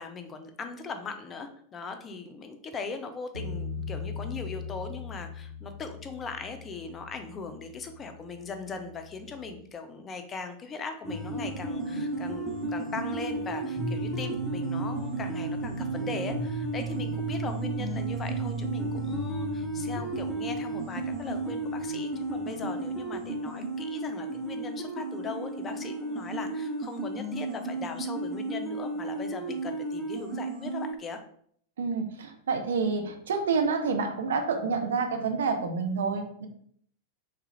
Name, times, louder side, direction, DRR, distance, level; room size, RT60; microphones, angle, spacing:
voice 1, 0.0-31.2, left 4 dB, 25° left, 7 dB, 0.4 m, -39 dB
Bass guitar, 3.3-9.6, left 5 dB, 90° left, 0.3 m, -40 dB
sound 1, 11.0-30.9, right 2 dB, 10° right, 0.8 m, -33 dB
voice 2, 31.8-36.5, right 4 dB, 65° right, 5 dB, 0.4 m, -28 dB
3.2 x 2.4 x 3.0 m, 0.62 s
figure-of-eight pair, 90°, 0 cm